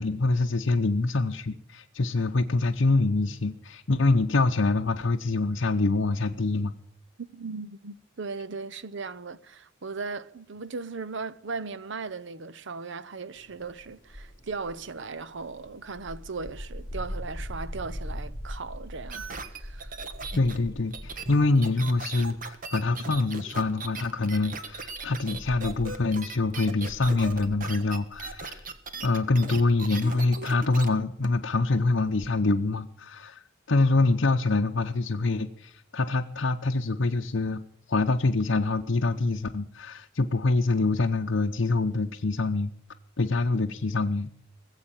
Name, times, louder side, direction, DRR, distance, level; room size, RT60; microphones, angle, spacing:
voice 1, 0.0-6.7 20.4-28.6 29.0-37.6 37.9-42.7 43.2-44.3, left 3 dB, 65° left, 0.8 m, -25 dB
voice 2, 7.2-20.0, right 4 dB, 65° right, 0.8 m, -37 dB
sound 1, 13.3-21.8 22.2-22.6 23.1-23.2 24.1-29.1, equal, 20° left, 3.5 m, -42 dB
sound 2, 19.1-30.9 31.2-31.3, right 4 dB, 45° right, 1.6 m, -38 dB
19.5 x 8.1 x 9.0 m
head